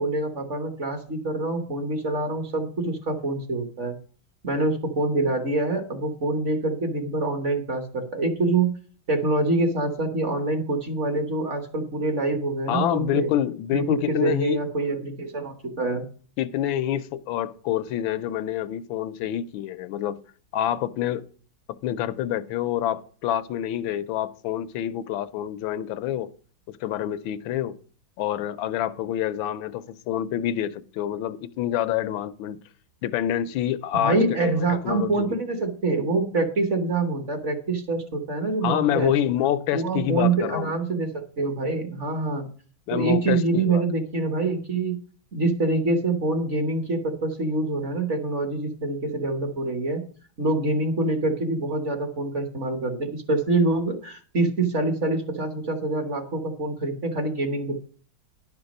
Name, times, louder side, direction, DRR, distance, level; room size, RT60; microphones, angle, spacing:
voice 1, 0.0-4.0 4.4-8.7 9.1-13.3 13.7-16.1 34.0-39.1 39.7-42.4 42.9-45.0 45.3-50.0 50.4-57.7, right 2 dB, 40° right, 1.2 m, -25 dB
voice 2, 12.7-14.6 16.4-20.2 20.5-21.2 21.8-26.3 26.7-27.7 28.2-32.6 33.0-35.4 38.6-40.7 42.9-43.8, left 11 dB, 80° left, 1.3 m, -27 dB
11.0 x 6.0 x 5.2 m
omnidirectional pair, 2.2 m